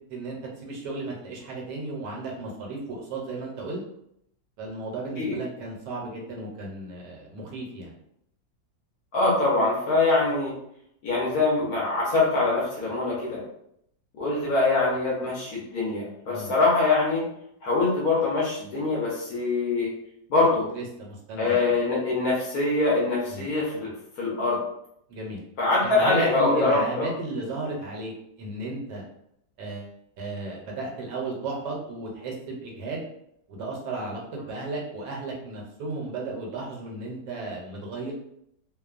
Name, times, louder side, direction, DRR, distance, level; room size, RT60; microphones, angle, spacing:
voice 1, 0.1-3.8 4.6-7.9 16.3-16.5 20.7-21.6 23.3-23.5 25.1-25.4 25.8-29.0 29.6-33.0 33.5-38.1, right 3 dB, 75° right, -2 dB, 1.2 m, -34 dB
voice 2, 9.1-10.5 11.0-13.4 14.2-17.3 17.6-19.9 20.3-20.7 21.4-24.6 25.6-27.1, left 3 dB, 65° left, -4 dB, 1.0 m, -24 dB
3.0 x 2.1 x 2.4 m, 0.74 s
omnidirectional pair, 2.0 m